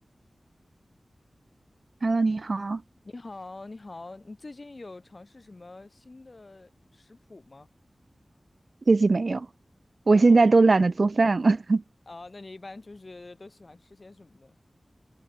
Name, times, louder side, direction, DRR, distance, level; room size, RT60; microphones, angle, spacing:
voice 1, 2.0-2.8 8.9-9.5 10.1-11.8, right 3 dB, 60° right, 0.7 m, -20 dB
voice 2, 3.0-7.7 10.1-10.6 12.1-14.6, left 2 dB, 45° left, 8.0 m, -45 dB
wide cardioid pair, 70°, 0 cm